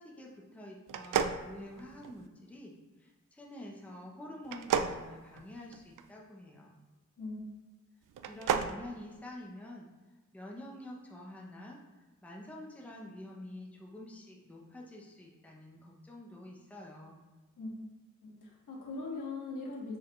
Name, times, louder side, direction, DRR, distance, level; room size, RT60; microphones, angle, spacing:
voice 1, 0.0-2.7 3.0-6.8 8.2-9.9 10.3-11.8 12.2-17.2, left 1 dB, 5° left, -2 dB, 0.8 m, -47 dB
sound 1, 0.9-2.3 4.4-6.0 8.1-8.8, right 7 dB, 80° right, 0.5 m, -32 dB
voice 2, 18.2-20.0, left 3 dB, 75° left, -3 dB, 1.8 m, -40 dB
6.7 x 4.9 x 3.1 m, 1.2 s
wide cardioid pair, 160°, 31 cm